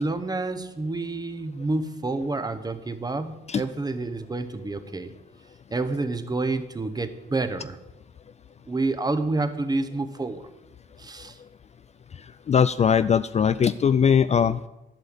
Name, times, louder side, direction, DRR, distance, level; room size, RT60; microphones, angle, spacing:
voice 1, 0.0-5.1 5.7-7.8 8.7-10.4 11.0-11.4, right 2 dB, 20° right, 10 dB, 1.0 m, -28 dB
voice 2, 12.5-14.7, left 7 dB, 35° left, 13 dB, 0.4 m, -20 dB
11.5 x 5.7 x 8.8 m, 0.99 s
cardioid pair, 90°, 20 cm